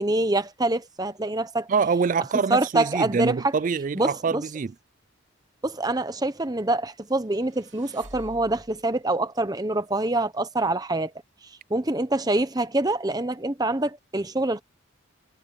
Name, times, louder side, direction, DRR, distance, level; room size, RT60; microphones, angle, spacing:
voice 1, 0.0-1.7 2.5-3.5 3.9-4.4 5.6-11.1 11.7-14.6, right 2 dB, 20° right, 1.0 m, -25 dB
voice 2, 1.7-4.7, right 5 dB, 40° right, 0.3 m, -25 dB
sound 1, 7.2-8.9, right 1 dB, 60° right, 3.0 m, -47 dB
head